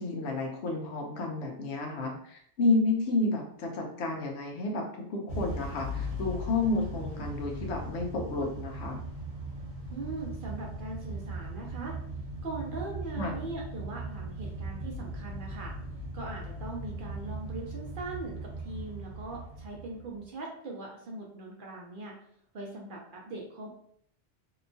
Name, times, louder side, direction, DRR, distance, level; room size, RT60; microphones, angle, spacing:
voice 1, 0.0-9.0 13.2-13.4, left 3 dB, 75° left, 2 dB, 0.9 m, -31 dB
Motor vehicle (road) / Engine starting / Accelerating revving vroom, 5.3-20.3, right 1 dB, 80° right, 1.1 m, -39 dB
voice 2, 9.9-11.9 12.4-15.7 16.1-22.2 22.5-23.7, right 2 dB, 60° right, -1 dB, 0.6 m, -40 dB
2.9 x 2.2 x 2.6 m, 0.65 s
omnidirectional pair, 1.2 m